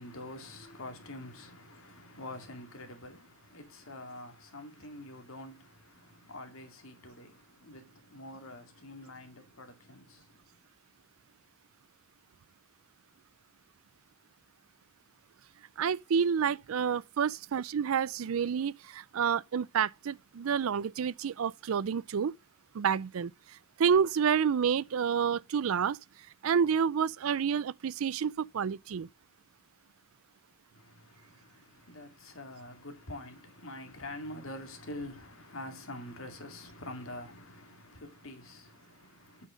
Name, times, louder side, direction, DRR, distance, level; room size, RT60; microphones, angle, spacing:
voice 1, 0.0-10.4 30.7-39.5, left 1 dB, 85° left, 2.4 m, -46 dB
voice 2, 15.8-22.3 22.7-23.3 23.8-26.0 26.4-29.1, right 7 dB, 85° right, 0.4 m, -29 dB
8.3 x 5.7 x 5.0 m
head